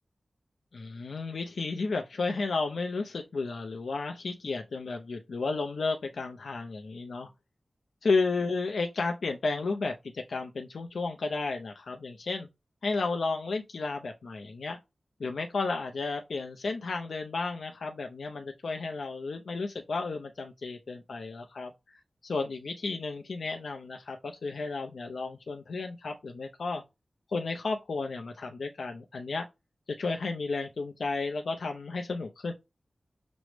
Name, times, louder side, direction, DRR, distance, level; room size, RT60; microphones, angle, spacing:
voice 1, 0.7-7.3 8.0-12.5 12.8-14.8 15.2-21.7 22.2-26.8 27.3-29.4 30.0-32.5, left 3 dB, 90° left, 0.4 m, -33 dB
6.0 x 2.0 x 3.1 m
wide cardioid pair, 105°, 0 cm